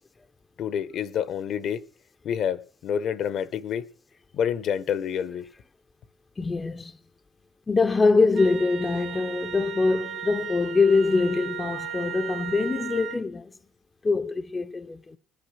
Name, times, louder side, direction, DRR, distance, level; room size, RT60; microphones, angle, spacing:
voice 1, 0.6-1.8 2.2-3.9 4.3-5.4, left 8 dB, 60° left, 1.0 m, -28 dB
voice 2, 6.4-6.9 7.7-13.5 14.0-15.2, left 3 dB, 25° left, 0.7 m, -23 dB
Wind instrument woodwind instrument, 8.3-13.2, right 8 dB, 60° right, 1.2 m, -36 dB
20.0 x 8.7 x 6.3 m
supercardioid pair, 90°, 0 cm